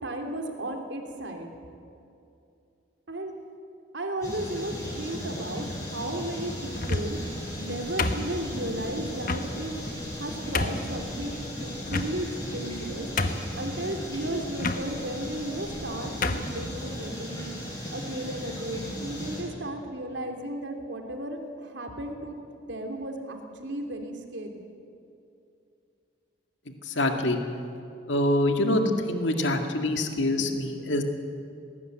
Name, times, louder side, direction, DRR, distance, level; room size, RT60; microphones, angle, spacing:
voice 1, 0.0-1.5 3.1-3.3 3.9-7.2 7.6-9.8 10.2-13.1 13.5-17.5 17.9-22.4 22.7-24.6, right 1 dB, 75° right, 4 dB, 2.8 m, -34 dB
sound 1, 4.2-19.4, equal, 15° left, 6.1 m, -37 dB
sound 2, 6.7-7.3 8.0-8.7 9.3-9.5 10.1-10.2 10.5-10.9 11.9-12.4 12.8-12.9 13.2-13.6 14.6-14.8 15.7-15.8 16.2-16.5, left 3 dB, 45° left, 1.2 m, -28 dB
voice 2, 26.9-27.4 28.1-31.0, left 1 dB, 75° left, 5 dB, 2.1 m, -25 dB
19.5 x 18.0 x 9.2 m, 2.6 s
head